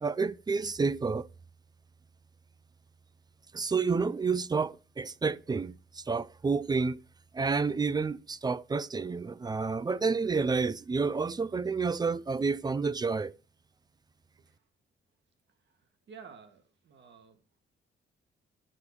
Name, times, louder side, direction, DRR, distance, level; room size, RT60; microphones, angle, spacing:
voice 1, 0.0-1.3 3.5-7.0 7.3-13.3, right 4 dB, 20° right, 0.4 m, -29 dB
voice 2, 15.5-17.6, right 6 dB, 65° right, 1.8 m, -53 dB
9.9 x 4.7 x 6.7 m
cardioid pair, 90°, 20 cm